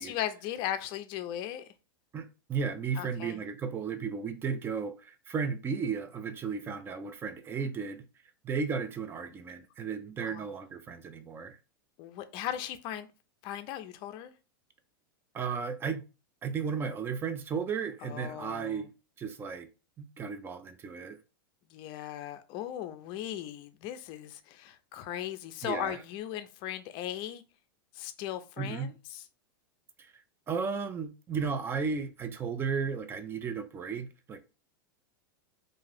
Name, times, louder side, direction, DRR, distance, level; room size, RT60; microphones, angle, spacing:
voice 1, 0.0-1.7 3.0-3.4 10.2-10.5 12.0-13.1 13.4-14.3 18.0-18.9 21.7-27.4 27.9-29.2, left 11 dB, 40° left, 0.4 m, -38 dB
voice 2, 2.1-8.0 8.4-11.6 15.3-16.0 16.4-18.9 19.2-19.7 20.0-21.2 25.6-26.0 28.6-28.9 30.0-34.4, right 6 dB, 20° right, 0.3 m, -34 dB
2.6 x 2.4 x 3.3 m
supercardioid pair, 135°, 12 cm